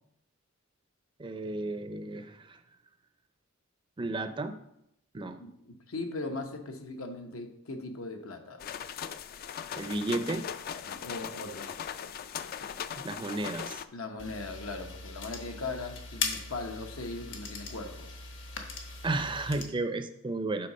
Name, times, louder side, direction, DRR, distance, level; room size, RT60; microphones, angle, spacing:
voice 1, 1.2-2.6 4.0-4.5 5.1-5.4 9.8-10.5 13.0-13.8 19.0-20.7, right 2 dB, 25° right, 9 dB, 0.5 m, -33 dB
voice 2, 5.2-8.6 10.8-11.7 13.9-18.1, left 3 dB, 85° left, 4 dB, 1.0 m, -39 dB
sound 1, 8.6-13.8, left 8 dB, 45° left, 0.3 m, -39 dB
sound 2, 14.2-19.7, left 5 dB, 60° left, 1.0 m, -39 dB
7.6 x 4.0 x 5.5 m, 0.77 s
head